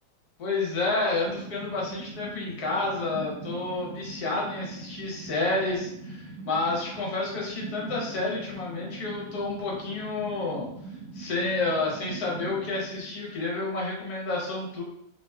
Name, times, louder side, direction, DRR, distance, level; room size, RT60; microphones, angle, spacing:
voice 1, 0.4-10.7 11.1-14.8, left 3 dB, 60° left, -3 dB, 1.2 m, -30 dB
sound 1, 1.3-13.9, right 2 dB, 70° right, 0.9 m, -42 dB
3.4 x 2.8 x 2.2 m, 0.77 s
omnidirectional pair, 2.3 m